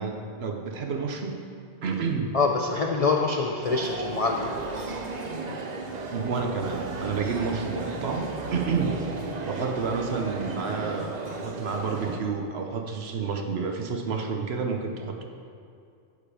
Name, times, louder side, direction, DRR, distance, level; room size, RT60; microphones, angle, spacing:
voice 1, 0.0-1.4 1.8-2.4 6.1-9.0 9.5-11.1 11.4-15.2, right 5 dB, 65° right, 4 dB, 1.1 m, -30 dB
voice 2, 2.3-4.4, left 4 dB, 45° left, 1 dB, 0.5 m, -25 dB
sound 1, 3.6-12.2, right 3 dB, 45° right, 0.7 m, -34 dB
13.5 x 5.1 x 5.0 m, 2.4 s
omnidirectional pair, 1.2 m